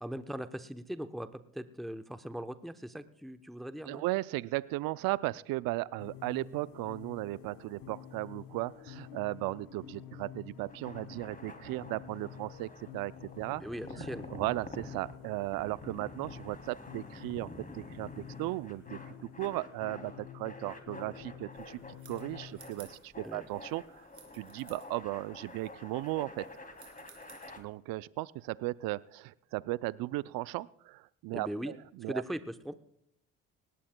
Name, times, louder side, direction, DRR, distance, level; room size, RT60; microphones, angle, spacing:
voice 1, 0.0-4.0 13.6-14.3 23.2-23.5 31.3-31.7 32.1-32.7, equal, ahead, 9 dB, 0.8 m, -40 dB
voice 2, 3.8-13.6 14.0-17.5 17.7-19.0 19.4-21.8 22.1-23.8 24.3-26.4 27.6-32.2, right 19 dB, 70° right, 19 dB, 0.5 m, -36 dB
sound 1, 6.0-22.8, left 10 dB, 65° left, 1.3 m, -50 dB
sound 2, 10.6-27.6, left 2 dB, 25° left, 2.8 m, -49 dB
sound 3, 21.5-27.6, right 6 dB, 55° right, 3.8 m, -59 dB
19.5 x 17.0 x 2.2 m, 0.75 s
hypercardioid pair, 55°, 36 cm